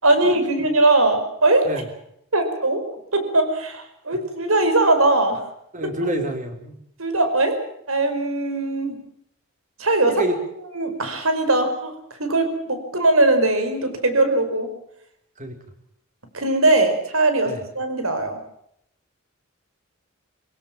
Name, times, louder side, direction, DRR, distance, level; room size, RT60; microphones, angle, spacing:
voice 1, 0.0-1.7 2.3-2.8 3.1-5.4 7.0-7.6 7.9-9.0 9.8-10.2 10.7-11.9 12.2-14.7 16.3-18.4, right 2 dB, 75° right, 8 dB, 4.9 m, -20 dB
voice 2, 5.7-6.7 10.1-10.4 15.4-15.5 17.5-17.6, right 1 dB, 35° right, 5 dB, 4.5 m, -27 dB
25.5 x 17.0 x 7.5 m, 0.74 s
head